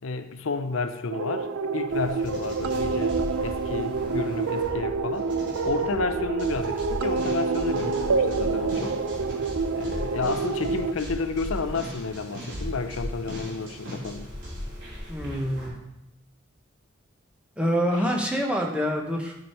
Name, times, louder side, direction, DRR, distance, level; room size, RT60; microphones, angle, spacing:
voice 1, 0.0-5.3 5.6-9.0 9.7-14.3, left 4 dB, 85° left, 9 dB, 0.6 m, -31 dB
sound 1, 1.1-10.9, right 4 dB, 80° right, 0.5 m, -27 dB
sound 2, 1.9-15.7, equal, 60° right, 3.4 m, -37 dB
voice 2, 15.1-15.7 17.6-19.4, equal, 5° right, 0 dB, 1.0 m, -26 dB
11.5 x 5.0 x 4.4 m, 0.84 s
head